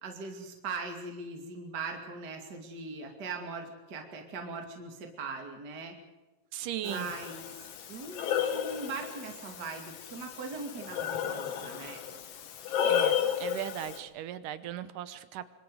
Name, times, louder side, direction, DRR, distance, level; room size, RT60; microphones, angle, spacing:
voice 1, 0.0-6.0 6.8-7.5 7.9-12.0, right 4 dB, 30° right, 3 dB, 2.6 m, -40 dB
voice 2, 6.5-7.1 12.9-15.5, right 12 dB, 75° right, 13 dB, 2.5 m, -37 dB
Breathing, 6.8-14.0, left 9 dB, 55° left, 2.0 m, -33 dB
26.5 x 25.0 x 4.9 m, 1.1 s
omnidirectional pair, 3.9 m